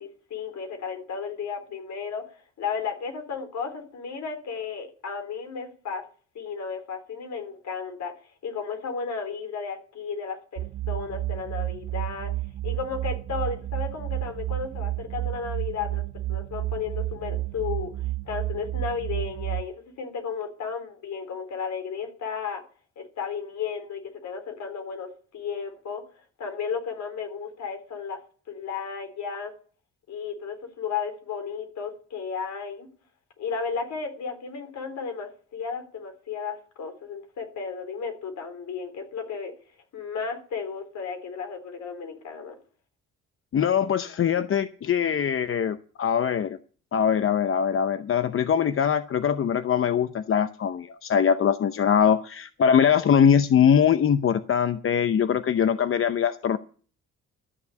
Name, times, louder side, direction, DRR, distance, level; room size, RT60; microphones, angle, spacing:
voice 1, 0.0-2.3 2.6-6.0 6.3-8.1 8.4-12.3 12.6-16.0 16.3-17.9 18.3-22.6 23.0-26.0 26.4-28.2 28.5-29.5 30.1-32.9 33.4-39.5 39.9-42.6, left 6 dB, 65° left, 5 dB, 3.8 m, -34 dB
sound 1, 10.6-19.6, right 16 dB, 80° right, 0.8 m, -31 dB
voice 2, 43.5-46.6 46.9-56.6, left 8 dB, 45° left, 12 dB, 0.7 m, -22 dB
13.5 x 7.1 x 8.1 m, 0.42 s
cardioid pair, 90°, 30 cm